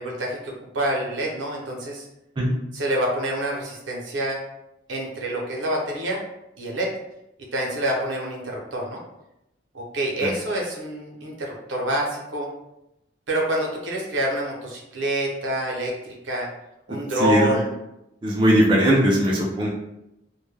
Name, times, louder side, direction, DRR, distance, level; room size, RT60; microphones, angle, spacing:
voice 1, 0.0-2.1 2.7-4.4 4.9-6.2 6.6-6.9 7.5-9.0 9.7-12.5 13.3-16.5 16.9-17.7, right 1 dB, 85° right, -1 dB, 0.7 m, -27 dB
voice 2, 17.2-17.6 18.2-19.7, equal, 25° right, -3 dB, 0.4 m, -19 dB
2.1 x 2.1 x 3.1 m, 0.87 s
head